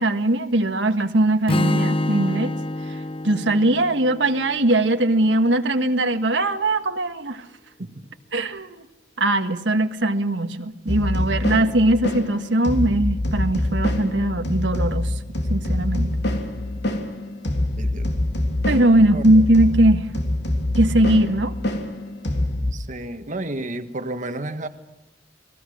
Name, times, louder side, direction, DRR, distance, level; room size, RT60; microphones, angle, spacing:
voice 1, 0.0-2.5 3.2-7.4 8.3-8.8 9.2-15.1 15.5-16.1 18.6-20.1 20.8-21.5, right 1 dB, 80° right, 6 dB, 1.6 m, -20 dB
Strum, 1.5-5.6, left 1 dB, 30° left, 0.8 m, -27 dB
sound 1, 10.9-22.7, left 1 dB, 65° left, 3.4 m, -25 dB
voice 2, 17.8-18.1 19.0-19.2 22.7-24.7, right 2 dB, 45° right, 7 dB, 1.5 m, -31 dB
28.5 x 19.5 x 6.4 m, 0.98 s
head